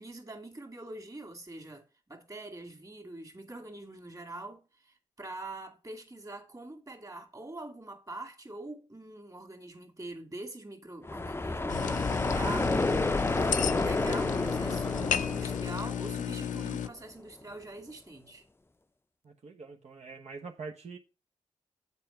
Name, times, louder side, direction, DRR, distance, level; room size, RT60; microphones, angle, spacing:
voice 1, 0.0-18.4, right 2 dB, 25° right, 2.3 m, -44 dB
sound 1, 11.0-16.8, left 2 dB, 20° left, 0.6 m, -30 dB
sound 2, 11.7-16.9, left 9 dB, 80° left, 0.4 m, -33 dB
voice 2, 19.2-21.0, right 4 dB, 60° right, 1.2 m, -44 dB
7.5 x 4.6 x 5.8 m
cardioid pair, 50°, 13 cm